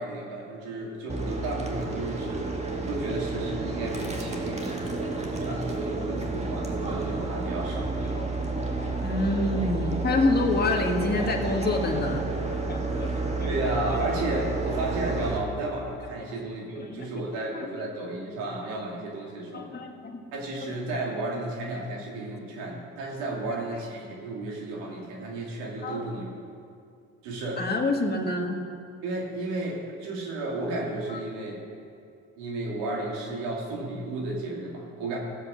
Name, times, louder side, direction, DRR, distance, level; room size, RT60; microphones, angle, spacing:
voice 1, 0.0-2.5 2.9-7.9 13.4-19.7 20.3-26.3 27.2-27.6 29.0-31.6 32.4-35.2, right 2 dB, 90° right, -1 dB, 2.5 m, -33 dB
sound 1, 1.1-15.4, right 3 dB, 20° right, 1.9 m, -30 dB
voice 2, 8.5-14.0 16.8-17.6 19.5-20.2 20.6-20.7 21.8-21.9 25.8-26.0 27.6-28.6 31.1-31.2, left 2 dB, 30° left, 1 dB, 1.7 m, -28 dB
14.5 x 7.8 x 6.4 m, 2.4 s
supercardioid pair, 75°, 33 cm